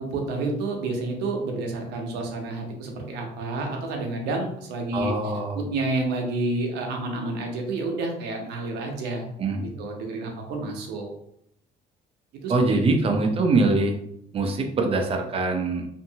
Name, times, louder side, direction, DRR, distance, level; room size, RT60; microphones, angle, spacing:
voice 1, 0.0-5.1 5.6-9.3 9.8-11.1 12.4-12.8, right 2 dB, 80° right, 2 dB, 0.7 m, -29 dB
voice 2, 4.9-5.6 9.4-9.8 12.5-14.0 14.3-15.9, right 3 dB, 35° right, 4 dB, 0.5 m, -23 dB
2.7 x 2.6 x 2.7 m, 0.74 s
cardioid pair, 110°, 17 cm